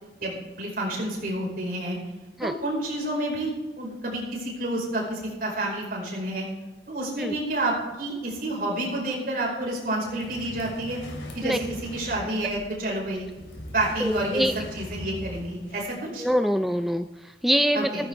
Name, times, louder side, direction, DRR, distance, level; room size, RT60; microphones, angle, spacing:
voice 1, 0.0-2.0 2.4-3.5 3.8-6.5 6.9-11.0 11.3-13.3 13.7-16.3 17.7-18.0, right 1 dB, 50° right, -2 dB, 5.0 m, -29 dB
sound 1, 10.2-15.9, left 1 dB, 80° left, 3.3 m, -41 dB
voice 2, 14.0-14.6 16.2-18.1, equal, ahead, 8 dB, 0.3 m, -25 dB
16.0 x 14.5 x 3.5 m, 1.2 s
head